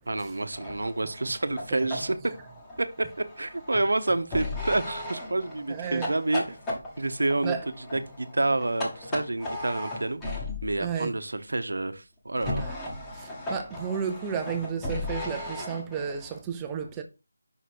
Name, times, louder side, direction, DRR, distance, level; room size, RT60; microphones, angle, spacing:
voice 1, 0.1-2.2 3.4-6.6 7.0-7.6 7.9-10.2 10.6-12.7, right 2 dB, 80° right, 0.8 m, -28 dB
sound 1, 0.5-10.8 12.3-16.4, left 1 dB, 10° left, 1.2 m, -36 dB
voice 2, 1.7-2.0 5.7-6.1 7.4-7.7 10.8-11.1 12.6-12.8 13.1-17.0, right 7 dB, 10° right, 0.6 m, -33 dB
5.8 x 4.0 x 4.6 m
figure-of-eight pair, 170°, 0 cm